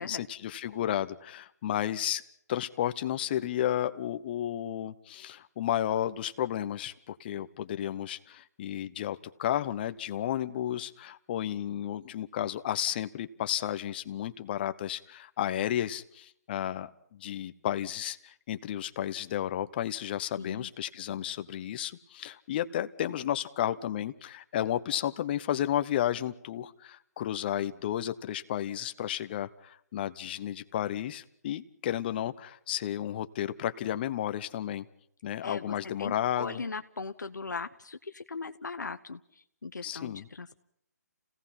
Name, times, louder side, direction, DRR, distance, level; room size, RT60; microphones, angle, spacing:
voice 1, 0.0-2.2 2.5-34.8 35.2-36.6 39.8-40.3, left 11 dB, 35° left, 11 dB, 0.9 m, -32 dB
voice 2, 20.4-20.7 35.4-40.6, left 4 dB, 90° left, 8 dB, 0.9 m, -39 dB
29.5 x 17.5 x 5.8 m, 0.71 s
hypercardioid pair, 150°, 10 cm